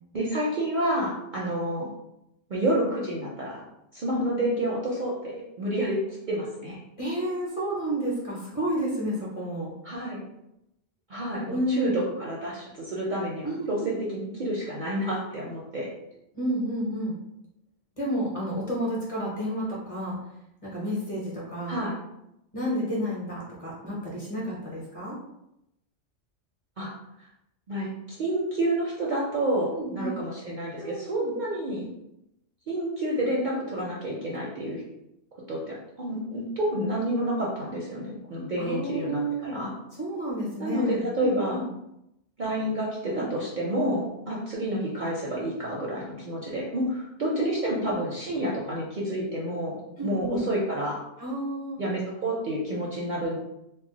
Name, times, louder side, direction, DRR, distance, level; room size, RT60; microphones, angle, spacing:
voice 1, 0.1-1.9 2.5-3.6 3.9-6.0 6.3-6.8 9.8-10.2 11.1-15.9 21.7-21.9 26.8-26.9 27.7-31.9 32.7-34.8 35.5-39.7 40.6-41.6 42.4-51.0 51.8-53.4, right 1 dB, 55° right, -4 dB, 0.6 m, -29 dB
voice 2, 7.0-9.7 11.5-12.0 13.4-13.9 16.3-17.1 18.0-20.2 20.6-21.8 22.5-25.2 29.7-30.2 30.8-31.3 38.6-39.6 39.9-41.6 43.0-43.3 47.3-47.9 50.0-50.4 51.2-51.8, right 1 dB, 30° left, -5 dB, 0.8 m, -31 dB
2.3 x 2.1 x 3.8 m, 0.84 s
omnidirectional pair, 1.3 m